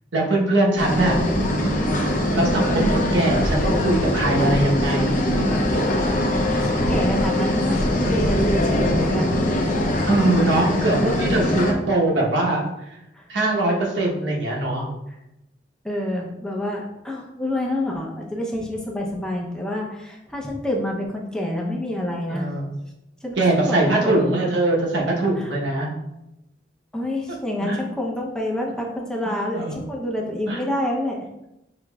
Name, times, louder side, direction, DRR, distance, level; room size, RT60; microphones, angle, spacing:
voice 1, 0.1-1.2 2.3-5.2 10.1-12.9 13.3-14.9 22.3-22.7 23.4-25.9 27.6-27.8 29.5-29.8 30.5-30.6, right 2 dB, 85° right, -2 dB, 1.0 m, -22 dB
sound 1, 0.8-11.7, left 1 dB, 45° left, 0.6 m, -22 dB
voice 2, 1.0-1.4 6.4-9.4 13.1-13.3 15.8-22.5 23.2-23.4 23.7-24.3 25.4-25.5 26.9-31.2, left 1 dB, 5° left, -2 dB, 0.6 m, -28 dB
6.0 x 3.0 x 2.3 m, 0.89 s
head